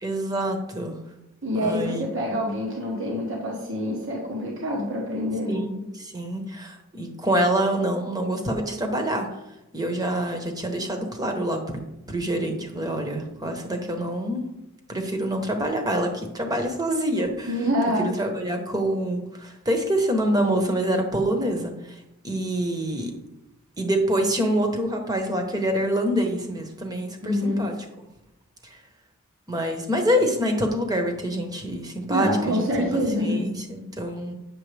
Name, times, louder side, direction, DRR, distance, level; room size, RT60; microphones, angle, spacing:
voice 1, 0.0-1.0 1.6-2.0 5.5-9.3 9.7-14.5 14.9-17.5 18.0-23.1 23.8-27.8 28.6-28.8 29.5-34.3, right 1 dB, 15° right, 4 dB, 1.1 m, -26 dB
voice 2, 1.4-5.7 17.5-18.1 27.2-27.7 32.1-33.5, equal, 60° right, -2 dB, 1.4 m, -26 dB
9.1 x 6.8 x 3.4 m, 0.90 s
head